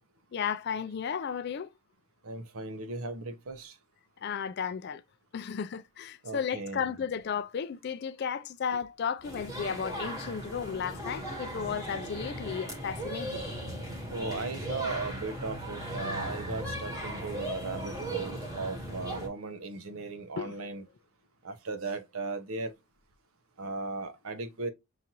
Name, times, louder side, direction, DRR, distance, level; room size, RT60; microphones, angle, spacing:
voice 1, 0.3-1.7 4.2-5.0 5.3-13.4 20.4-20.5, left 7 dB, 50° left, 0.3 m, -34 dB
voice 2, 2.2-3.7 6.2-6.8 14.1-20.8 21.4-22.7 23.6-24.7, right 3 dB, 75° right, 0.8 m, -37 dB
sound 1, 9.2-19.3, equal, 15° right, 1.1 m, -37 dB
5.6 x 2.5 x 2.8 m
head